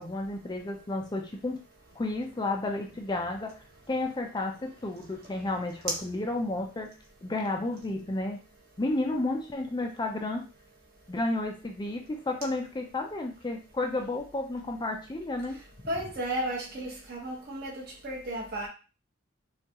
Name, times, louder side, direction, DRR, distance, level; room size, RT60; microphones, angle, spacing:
voice 1, 0.0-1.6 2.0-3.6 3.9-6.9 7.2-8.4 8.8-10.5 11.1-15.6, left 2 dB, 20° left, 0.4 m, -32 dB
voice 2, 15.9-17.7 18.0-18.7, right 1 dB, 50° right, 1.4 m, -33 dB
4.5 x 2.4 x 2.9 m
head